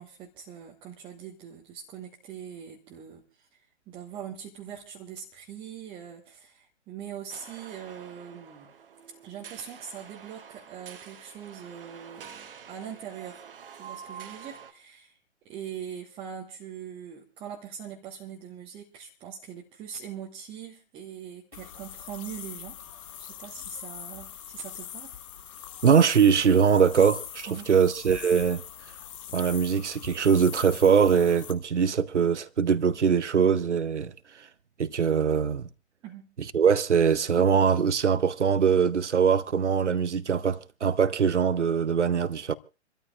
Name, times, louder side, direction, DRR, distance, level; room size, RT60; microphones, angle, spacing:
voice 1, 0.0-8.7 9.2-13.4 13.8-15.2 15.4-22.8 23.2-25.1 27.5-27.7 36.0-36.3, right 8 dB, 15° right, 1.2 m, -42 dB
sound 1, 7.3-14.7, right 7 dB, 50° right, 1.3 m, -47 dB
sound 2, 21.5-31.5, left 10 dB, 30° left, 1.0 m, -42 dB
voice 2, 25.8-28.6 29.3-34.1 34.4-34.5 34.8-35.7 36.5-42.5, right 6 dB, 75° right, 0.8 m, -22 dB
28.0 x 13.5 x 2.4 m
figure-of-eight pair, 130°, 35 cm